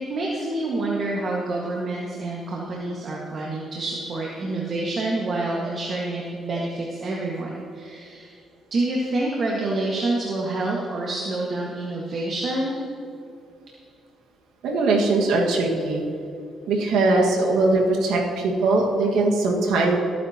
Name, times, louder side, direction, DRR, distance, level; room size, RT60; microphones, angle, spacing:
voice 1, 0.1-8.3 8.7-12.8, right 2 dB, 50° right, -3 dB, 1.7 m, -27 dB
voice 2, 14.6-16.0 16.7-20.0, right 2 dB, 90° right, -2 dB, 1.8 m, -21 dB
23.0 x 9.4 x 2.9 m, 2.5 s
cardioid pair, 90°, 0 cm